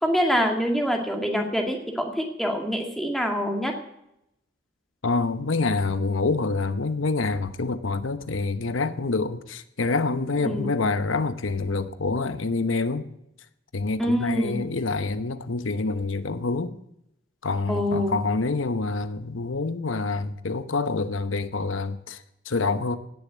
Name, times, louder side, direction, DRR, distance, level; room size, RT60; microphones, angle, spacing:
voice 1, 0.0-3.7 10.4-10.7 14.0-14.6 17.7-18.2, equal, ahead, 2.0 m, -25 dB
voice 2, 5.0-13.1 13.7-16.8 17.4-23.0, left 3 dB, 85° left, 0.9 m, -27 dB
17.5 x 7.1 x 9.4 m
head